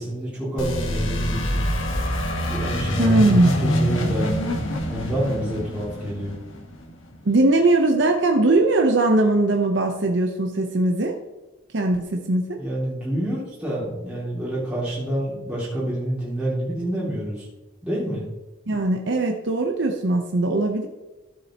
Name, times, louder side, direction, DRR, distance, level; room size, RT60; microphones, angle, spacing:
voice 1, 0.0-1.7 2.5-4.3 4.9-6.4 12.6-17.5 17.8-18.2, right 1 dB, 5° right, -8 dB, 2.5 m, -28 dB
sound 1, 0.6-7.2, equal, 85° left, 1.5 m, -25 dB
voice 2, 3.0-3.5 7.2-11.2 11.7-12.6 18.7-20.9, right 2 dB, 65° right, 3 dB, 0.8 m, -20 dB
13.5 x 7.5 x 2.9 m, 1.1 s
head